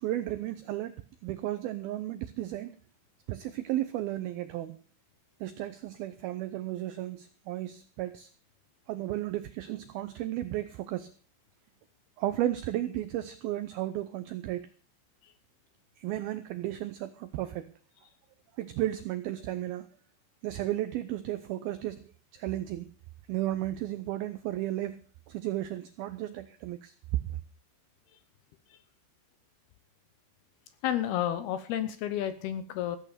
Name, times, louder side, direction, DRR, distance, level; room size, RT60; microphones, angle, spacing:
voice 1, 0.0-1.0 1.2-2.8 3.3-4.8 5.4-8.3 8.9-11.1 12.2-14.7 16.0-17.7 18.6-19.9 20.4-22.9 23.3-26.9, right 14 dB, 85° right, 12 dB, 2.1 m, -34 dB
voice 2, 30.8-33.0, left 11 dB, 75° left, 11 dB, 2.5 m, -31 dB
16.0 x 8.4 x 6.6 m, 0.43 s
omnidirectional pair, 5.3 m